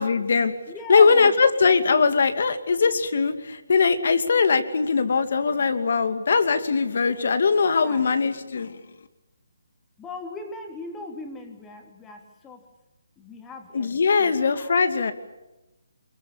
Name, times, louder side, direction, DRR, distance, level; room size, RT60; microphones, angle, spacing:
voice 1, 0.0-0.5 0.9-8.8 13.7-15.1, left 5 dB, 60° left, 10 dB, 2.5 m, -21 dB
voice 2, 0.7-1.3 7.8-8.0 10.0-12.7 13.2-14.7, left 3 dB, 10° left, 4 dB, 3.3 m, -39 dB
25.0 x 22.5 x 8.7 m, 1.0 s
hypercardioid pair, 160°, 0 cm